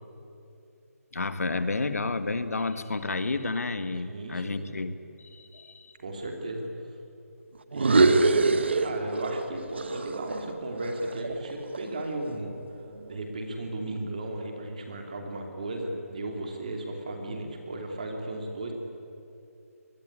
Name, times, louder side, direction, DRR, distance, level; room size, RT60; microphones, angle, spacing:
voice 1, 1.1-5.0 5.3-5.9, left 3 dB, 70° left, 10 dB, 1.7 m, -31 dB
voice 2, 4.0-4.8 6.0-6.7 7.7-12.5 13.1-18.7, right 1 dB, 30° right, 2 dB, 2.9 m, -35 dB
sound 1, 7.7-9.5 9.8-12.0, right 3 dB, 45° right, 1.2 m, -24 dB
25.0 x 21.0 x 9.8 m, 2.7 s
hypercardioid pair, 180°, 8 cm